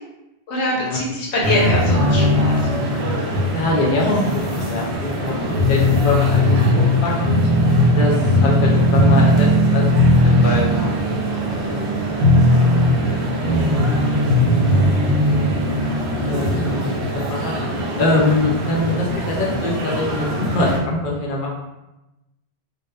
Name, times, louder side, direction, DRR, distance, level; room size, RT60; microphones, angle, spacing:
voice 1, 0.5-2.7, left 2 dB, 85° left, -4 dB, 1.0 m, -23 dB
sound 1, 1.4-20.8, equal, 75° right, 0.8 m, -18 dB
voice 2, 3.5-7.4 8.0-13.9 14.5-15.5 16.3-17.5 18.0-21.5, left 2 dB, 60° left, -3 dB, 0.6 m, -24 dB
2.8 x 2.0 x 2.2 m, 0.97 s
omnidirectional pair, 1.1 m